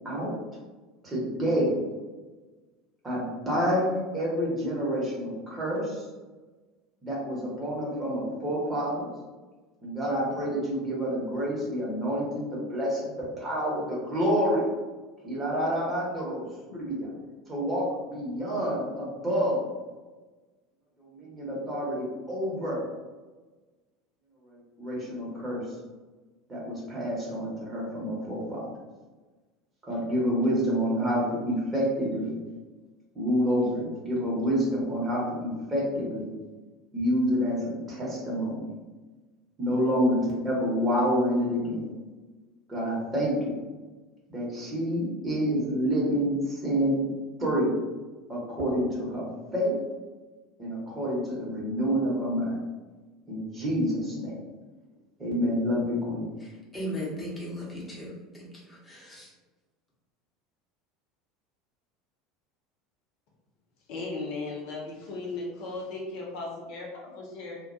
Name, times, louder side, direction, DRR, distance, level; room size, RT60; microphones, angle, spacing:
voice 1, 1.0-1.8 3.0-6.0 7.0-9.1 9.8-14.6 15.2-16.4 16.7-17.1 17.5-19.7 21.1-22.8 24.5-25.6 26.5-28.6 29.9-32.3 33.1-36.3 36.9-38.7 39.6-41.9 42.7-43.6 44.3-47.1 47.4-47.7 48.3-49.3 49.5-49.8 50.6-52.6 53.3-54.3 55.2-56.3, equal, 20° right, -5 dB, 1.1 m, -28 dB
voice 2, 56.4-59.3, equal, 15° left, -5 dB, 0.9 m, -37 dB
voice 3, 63.9-67.6, left 3 dB, 55° left, -3 dB, 0.6 m, -36 dB
2.2 x 2.2 x 2.6 m, 1.3 s
figure-of-eight pair, 70°, 0 cm